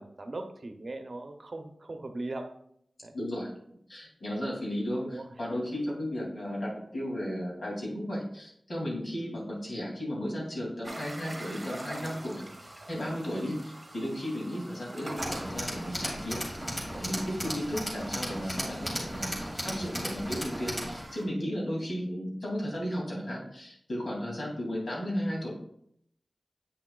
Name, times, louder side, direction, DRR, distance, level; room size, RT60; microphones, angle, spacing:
voice 1, 0.0-2.5 3.0-3.1 5.0-5.3 11.9-12.1 16.9-17.0, right 2 dB, 60° right, 6 dB, 0.7 m, -39 dB
voice 2, 3.1-3.5 3.9-16.4 16.7-25.5, equal, 75° left, -4 dB, 2.7 m, -34 dB
sound 1, 10.8-21.2, right 1 dB, 40° right, 1.1 m, -45 dB
Tools, 15.2-21.0, equal, 15° left, 2.5 m, -35 dB
8.3 x 6.0 x 2.4 m, 0.71 s
wide cardioid pair, 55°, 0 cm